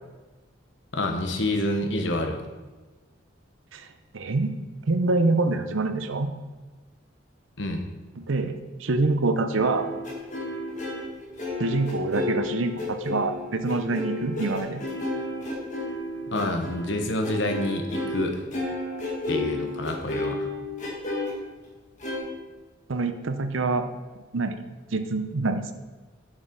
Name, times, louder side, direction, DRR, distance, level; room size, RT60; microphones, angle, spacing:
voice 1, 0.9-2.4 7.6-7.8 16.3-18.4 19.3-20.5, left 1 dB, 70° left, 4 dB, 1.1 m, -27 dB
voice 2, 4.1-4.5 4.9-6.3 8.3-9.9 11.6-14.8 22.9-23.9 24.3-24.6 24.9-25.7, right 3 dB, 85° right, 9 dB, 0.7 m, -25 dB
sound 1, 9.6-18.2 18.5-21.3 22.0-22.2, left 2 dB, 40° left, 2.1 m, -32 dB
7.3 x 6.6 x 5.1 m, 1.3 s
head